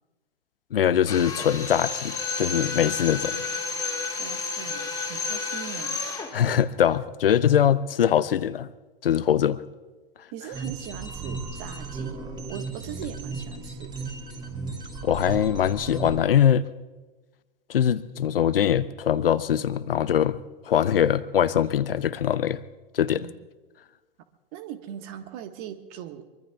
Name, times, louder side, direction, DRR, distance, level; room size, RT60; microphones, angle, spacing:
voice 1, 0.7-3.4 6.3-8.7 9.0-9.6 15.0-16.7 17.7-22.6 22.9-23.3, left 9 dB, 70° left, 16 dB, 0.7 m, -22 dB
Drill, 1.1-6.4, left 4 dB, 10° left, 2.4 m, -31 dB
voice 2, 3.3-3.8 4.2-6.0 10.3-13.9 23.1-23.4 24.5-26.2, right 10 dB, 40° right, 8 dB, 1.5 m, -40 dB
sound 1, 10.5-16.2, right 3 dB, 15° right, 3.0 m, -35 dB
23.5 x 23.5 x 2.4 m, 1.2 s
figure-of-eight pair, 105°, 29 cm